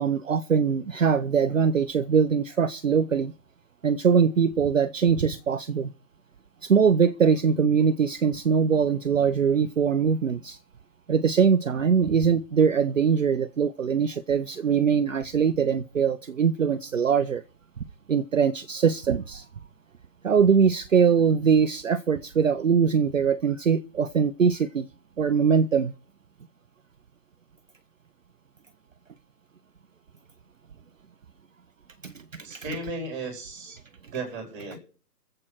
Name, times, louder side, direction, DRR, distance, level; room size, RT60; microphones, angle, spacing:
voice 1, 0.0-3.3 3.8-5.9 6.6-10.6 11.1-17.4 18.1-19.5 20.2-24.9 25.2-25.9 32.0-32.6, right 6 dB, 55° right, 0.8 m, -22 dB
voice 2, 32.4-33.8 34.1-34.8, right 2 dB, 15° right, 3.9 m, -35 dB
21.5 x 7.7 x 4.6 m
figure-of-eight pair, 160°, 48 cm